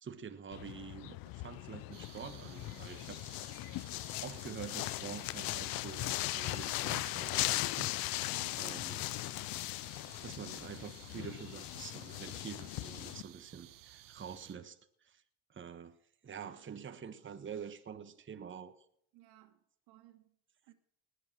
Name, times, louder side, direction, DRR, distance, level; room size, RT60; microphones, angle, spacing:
voice 1, 0.0-3.2 4.2-8.2 8.6-9.1 10.2-15.2 15.5-16.0 16.2-18.8, right 7 dB, 30° right, 1.3 m, -47 dB
sound 1, 0.5-13.2, left 19 dB, 65° left, 0.6 m, -38 dB
sound 2, 1.9-14.5, right 13 dB, 60° right, 1.2 m, -57 dB
voice 2, 8.3-8.9 19.1-20.4 20.7-20.8, right 16 dB, 80° right, 2.0 m, -60 dB
19.5 x 8.3 x 6.4 m
supercardioid pair, 80°, 38 cm